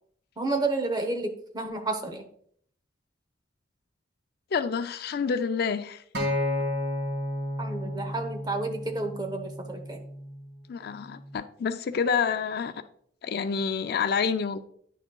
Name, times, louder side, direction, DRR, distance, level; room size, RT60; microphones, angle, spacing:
voice 1, 0.4-2.2 7.6-10.0, right 2 dB, 20° right, 0.9 m, -30 dB
voice 2, 4.5-6.0 10.7-12.8 13.2-14.6, left 6 dB, 55° left, 0.4 m, -28 dB
Acoustic guitar, 6.1-10.4 11.2-11.3, left 1 dB, 90° right, 1.9 m, -32 dB
9.9 x 6.2 x 2.3 m
head